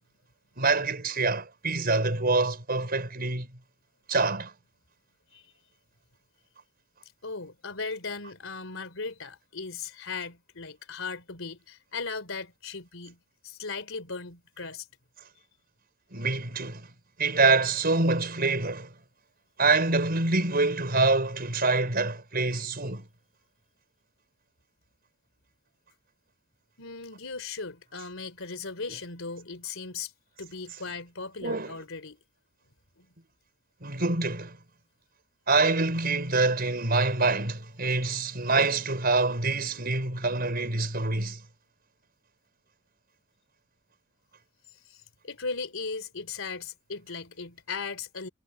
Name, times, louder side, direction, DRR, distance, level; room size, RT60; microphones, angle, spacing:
voice 1, 0.6-3.5 4.1-4.5 16.1-16.9 17.2-18.9 19.6-23.1 31.4-31.7 33.8-34.6 35.5-41.4, right 3 dB, 45° right, 5.4 m, -25 dB
voice 2, 7.2-13.2 13.4-14.9 26.8-30.1 30.4-32.2 33.0-33.1 44.9-48.3, left 4 dB, 70° left, 3.7 m, -37 dB
head